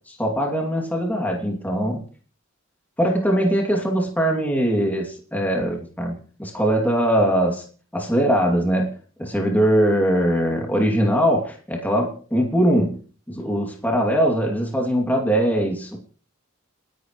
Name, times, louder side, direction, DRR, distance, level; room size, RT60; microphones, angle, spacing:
voice 1, 0.1-2.0 3.0-7.6 7.9-8.9 9.2-13.0 13.3-16.0, equal, 10° left, 2.7 m, -21 dB
29.5 x 11.0 x 3.2 m
head